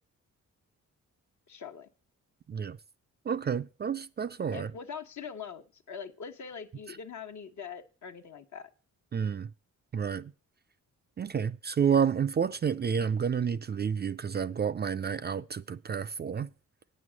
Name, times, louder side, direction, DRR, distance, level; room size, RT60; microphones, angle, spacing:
voice 1, 1.5-1.9 4.5-8.7, left 6 dB, 60° left, 1.2 m, -43 dB
voice 2, 3.3-4.7 6.9-7.0 9.1-9.5 9.9-10.3 11.2-16.5, right 7 dB, 30° right, 0.4 m, -30 dB
8.9 x 6.3 x 7.4 m
cardioid pair, 85°, 32 cm